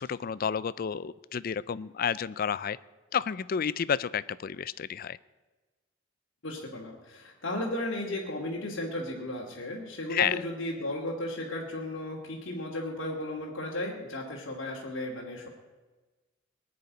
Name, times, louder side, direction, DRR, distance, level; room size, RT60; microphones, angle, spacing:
voice 1, 0.0-2.8 3.1-5.2 10.1-10.3, left 7 dB, 50° left, 18 dB, 0.4 m, -30 dB
voice 2, 6.4-15.5, left 1 dB, 80° left, -2 dB, 2.4 m, -35 dB
20.0 x 6.8 x 9.5 m, 1.2 s
head